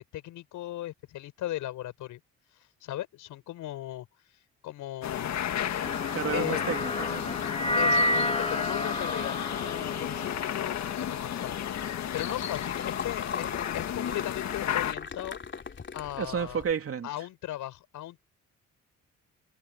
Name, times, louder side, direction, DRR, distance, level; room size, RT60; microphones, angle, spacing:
voice 1, 0.0-2.2 2.8-4.1 4.6-5.4 6.3-6.6 7.8-11.6 12.1-15.4 15.9-16.6 17.0-18.2, left 14 dB, 85° left, 6.1 m, -37 dB
sound 1, 5.0-14.9, left 10 dB, 65° left, 1.7 m, -33 dB
sound 2, 5.8-12.2, left 1 dB, 20° left, 2.0 m, -31 dB
voice 2, 6.1-7.2 16.2-17.1, right 7 dB, 50° right, 3.0 m, -31 dB
sound 3, 11.4-16.7, left 6 dB, 40° left, 3.3 m, -40 dB
cardioid pair, 90°, 30 cm